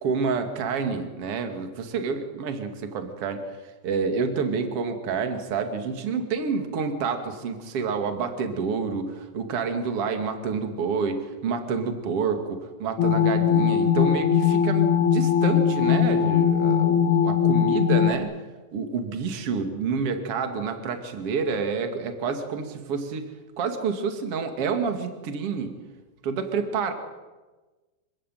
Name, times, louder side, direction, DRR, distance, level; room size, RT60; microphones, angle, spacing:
voice 1, 0.0-3.6 3.8-18.3 18.7-23.3 23.6-25.7 26.2-26.9, right 5 dB, 40° right, 7 dB, 2.5 m, -28 dB
sound 1, 13.0-18.1, left 8 dB, 80° left, 1.7 m, -20 dB
27.0 x 16.0 x 9.3 m, 1.2 s
omnidirectional pair, 5.5 m